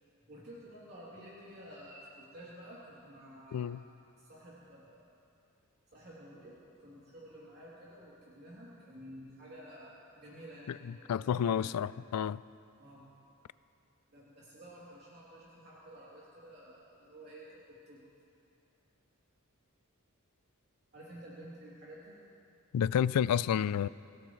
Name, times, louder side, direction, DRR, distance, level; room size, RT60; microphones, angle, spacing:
voice 1, 0.3-3.8 4.2-5.1 5.9-11.6 12.8-13.0 14.1-18.0 20.9-22.1, equal, 50° right, -8 dB, 3.1 m, -51 dB
voice 2, 3.5-3.8 10.7-12.4 22.7-23.9, left 8 dB, 85° left, 19 dB, 0.3 m, -30 dB
26.0 x 17.0 x 3.2 m, 2.7 s
head